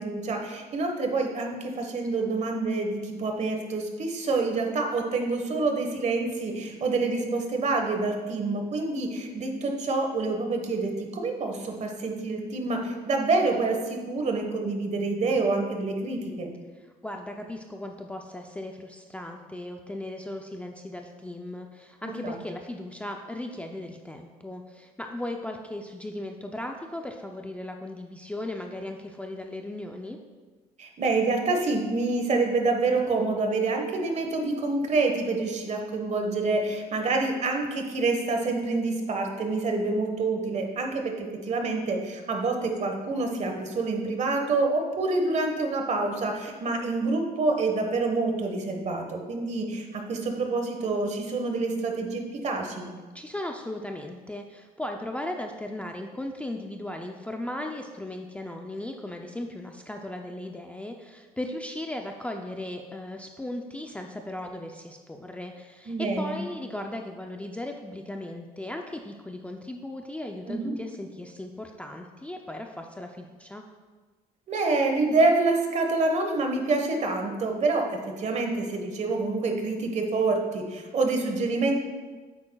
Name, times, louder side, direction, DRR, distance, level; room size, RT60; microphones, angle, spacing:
voice 1, 0.0-16.5 22.0-22.3 30.8-52.9 65.9-66.4 70.5-70.7 74.5-81.7, right 3 dB, 40° right, 3 dB, 1.3 m, -27 dB
voice 2, 16.7-30.2 53.1-73.6, left 1 dB, 10° left, 3 dB, 0.5 m, -37 dB
8.7 x 8.5 x 2.3 m, 1.4 s
cardioid pair, 110°, 17 cm